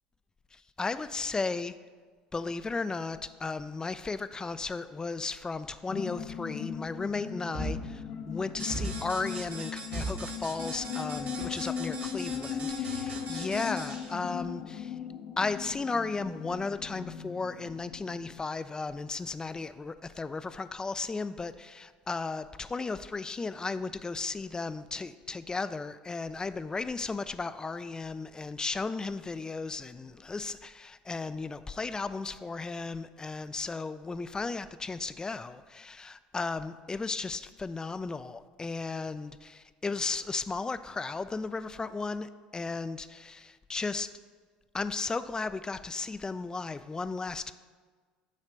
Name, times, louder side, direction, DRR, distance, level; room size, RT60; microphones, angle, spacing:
voice 1, 0.8-1.7 2.3-15.0 15.4-44.1 44.7-47.5, left 4 dB, 15° left, 13 dB, 0.3 m, -35 dB
sound 1, 5.9-18.4, left 7 dB, 55° left, 0.7 m, -38 dB
sound 2, 7.5-8.4 8.7-9.5 9.9-11.5 11.8-12.4 12.6-14.1, right 1 dB, 75° right, 1.7 m, -38 dB
sound 3, 8.6-14.1, right 4 dB, 35° right, 1.0 m, -43 dB
7.4 x 3.2 x 6.3 m, 1.5 s
figure-of-eight pair, 65°, 4 cm